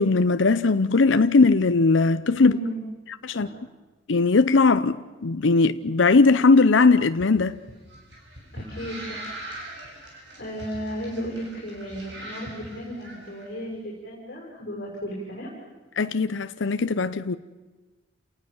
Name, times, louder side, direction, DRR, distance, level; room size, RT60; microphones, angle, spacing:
voice 1, 0.0-2.5 3.2-3.5 4.1-7.6 16.0-17.4, left 3 dB, 70° left, 0.7 m, -19 dB
voice 2, 2.4-2.8 3.3-3.6 8.5-9.2 10.4-15.5, equal, 50° left, 5.6 m, -34 dB
sound 1, 7.1-13.4, right 1 dB, 60° right, 7.5 m, -41 dB
29.0 x 19.0 x 7.1 m
head